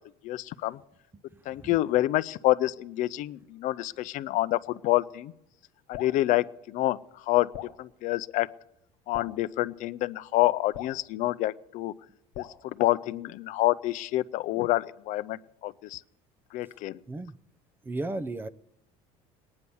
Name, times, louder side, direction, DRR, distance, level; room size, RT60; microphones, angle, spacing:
voice 1, 0.2-0.8 1.5-5.3 5.9-7.0 7.3-7.5 7.8-8.5 9.1-11.9 12.4-16.0 16.5-17.0, left 16 dB, 60° left, 15 dB, 0.5 m, -27 dB
Drip, 5.9-6.2 7.5-7.8 9.1-9.4 10.7-11.0 12.3-12.6, left 13 dB, 75° left, 1.0 m, -40 dB
voice 2, 17.8-18.5, right 2 dB, 15° right, 16 dB, 0.5 m, -34 dB
19.5 x 9.6 x 7.0 m, 0.85 s
cardioid pair, 130°, 15 cm